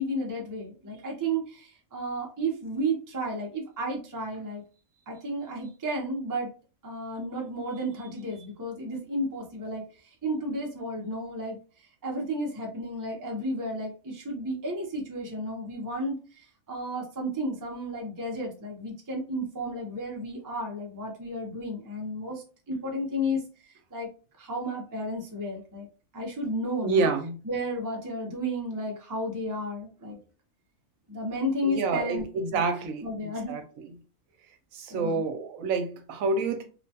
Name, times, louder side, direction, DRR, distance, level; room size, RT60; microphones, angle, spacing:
voice 1, 0.0-4.6 5.1-6.5 6.8-9.8 10.2-11.6 12.0-24.1 24.4-25.9 26.1-27.1 27.4-30.2 31.1-32.3 32.5-33.6 34.9-35.3, equal, 25° right, 0 dB, 0.4 m, -33 dB
voice 2, 26.8-27.3 31.6-33.1 33.5-33.6 34.8-36.6, right 4 dB, 75° right, 6 dB, 1.0 m, -27 dB
2.9 x 2.2 x 2.7 m, 0.36 s
omnidirectional pair, 1.5 m